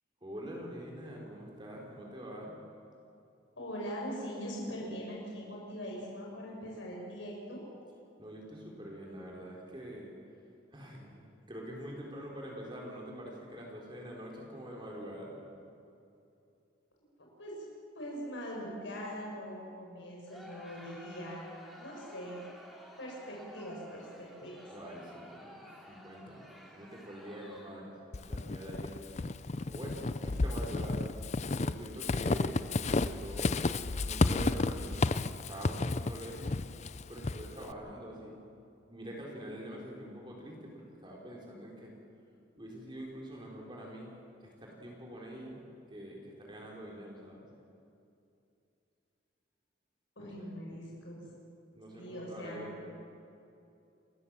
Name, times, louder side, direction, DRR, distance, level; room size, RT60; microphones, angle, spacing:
voice 1, 0.2-2.5 8.2-10.1 10.7-11.2 11.5-15.3 24.7-29.0 29.7-35.1 35.5-36.5 37.1-38.4 38.9-41.9 42.6-44.1 44.4-45.6 45.9-47.5 50.2-50.5 51.7-52.9, equal, 25° right, -2 dB, 3.8 m, -45 dB
voice 2, 3.6-7.7 17.4-21.4 21.8-22.4 23.0-24.6 50.2-51.3 51.9-52.7, equal, 85° left, -2 dB, 5.6 m, -42 dB
Crowd, 20.3-28.0, equal, ahead, 2.7 m, -53 dB
Walk footsteps / Squeak, 28.1-37.7, left 3 dB, 35° left, 0.5 m, -32 dB
29.0 x 14.5 x 7.4 m, 2.7 s
head